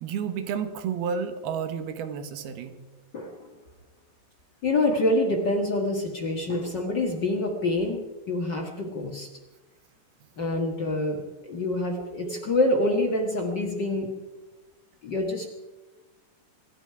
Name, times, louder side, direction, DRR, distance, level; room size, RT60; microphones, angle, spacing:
voice 1, 0.0-2.7, right 7 dB, 70° right, 9 dB, 3.1 m, -31 dB
voice 2, 3.1-3.5 4.6-9.3 10.4-14.1 15.0-15.5, left 2 dB, 70° left, 1 dB, 1.0 m, -26 dB
25.5 x 11.5 x 4.8 m, 1.1 s
omnidirectional pair, 5.0 m